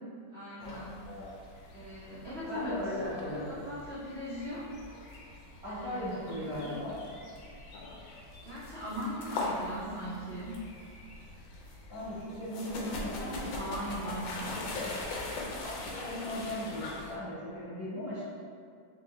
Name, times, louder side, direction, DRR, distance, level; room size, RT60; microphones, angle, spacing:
voice 1, 0.3-1.0 1.7-2.8 3.4-4.7 5.6-6.8 8.4-10.6 12.6-14.8, equal, 90° right, -11 dB, 0.5 m, -40 dB
sound 1, 0.6-17.2, left 2 dB, 75° left, 1.3 m, -42 dB
voice 2, 2.5-3.5 5.6-7.0 11.9-13.5 15.6-18.2, left 1 dB, 20° right, -13 dB, 1.3 m, -37 dB
4.4 x 2.8 x 2.6 m, 2.2 s
omnidirectional pair, 2.2 m